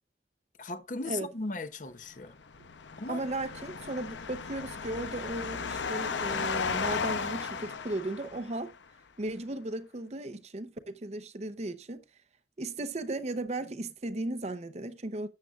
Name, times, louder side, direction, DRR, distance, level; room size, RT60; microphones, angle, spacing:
voice 1, 0.6-2.4 3.0-3.2, left 3 dB, 45° left, 0.8 m, -37 dB
sound 1, 2.4-8.7, left 5 dB, 80° left, 0.7 m, -35 dB
voice 2, 3.1-8.7 9.2-12.0 12.6-15.3, right 2 dB, 35° right, 0.7 m, -36 dB
12.5 x 8.2 x 2.4 m
head